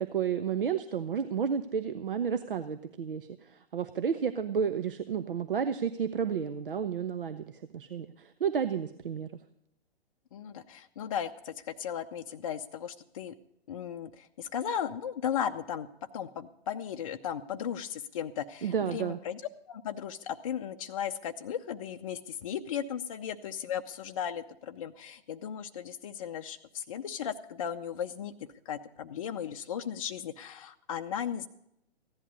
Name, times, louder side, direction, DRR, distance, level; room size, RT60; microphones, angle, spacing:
voice 1, 0.0-9.3 18.6-19.2, right 7 dB, 55° right, 11 dB, 0.8 m, -31 dB
voice 2, 10.3-13.3 13.7-15.9 16.1-19.4 19.7-28.3 28.7-31.5, left 8 dB, 35° left, 6 dB, 0.6 m, -36 dB
15.5 x 11.0 x 5.3 m, 0.77 s
figure-of-eight pair, 125°, 31 cm